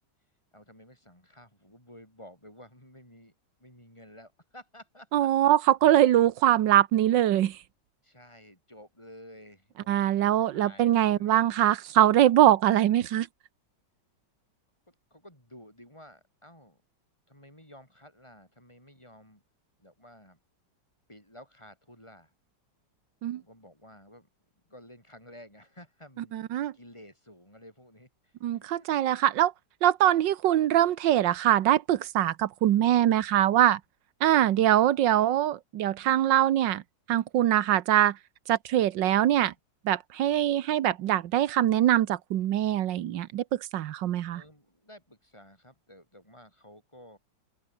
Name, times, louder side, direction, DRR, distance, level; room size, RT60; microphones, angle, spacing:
voice 1, 0.5-3.3 3.6-5.5 8.0-11.4 14.9-16.8 17.3-19.4 19.8-20.4 21.1-22.3 23.3-24.3 24.7-26.4 26.7-29.1 44.3-47.2, left 1 dB, 15° left, 7.7 m, -52 dB
voice 2, 5.1-7.6 9.9-13.3 23.2-23.4 26.3-26.7 28.4-29.5 29.8-33.8 34.2-36.8 37.1-38.2 38.5-39.5 39.8-44.4, right 12 dB, 80° right, 1.6 m, -23 dB
open air
omnidirectional pair, 2.0 m